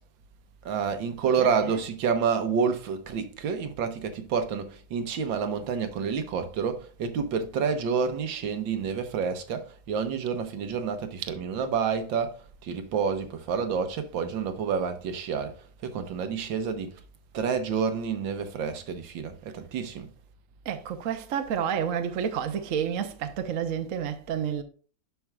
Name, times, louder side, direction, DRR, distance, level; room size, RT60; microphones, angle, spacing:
voice 1, 0.7-15.6 15.8-17.0 17.3-20.1, right 6 dB, 80° right, 1.8 m, -29 dB
voice 2, 1.3-1.8 20.6-24.6, right 8 dB, 60° right, 0.9 m, -30 dB
11.5 x 4.6 x 2.3 m
omnidirectional pair, 2.1 m